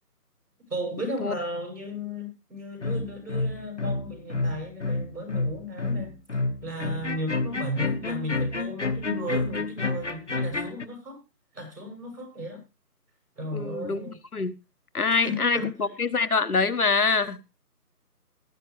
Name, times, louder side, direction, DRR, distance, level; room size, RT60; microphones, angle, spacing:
voice 1, 0.7-6.2 6.6-11.2 11.5-12.6 13.4-14.1 15.1-15.7, left 1 dB, 80° right, 4 dB, 7.0 m, -34 dB
sound 1, 2.8-10.9, left 3 dB, 50° left, 1.0 m, -29 dB
voice 2, 13.5-14.0 14.3-14.5 14.9-17.4, left 4 dB, 65° left, 12 dB, 1.2 m, -25 dB
18.5 x 8.6 x 3.2 m, 0.27 s
figure-of-eight pair, 175°, 47 cm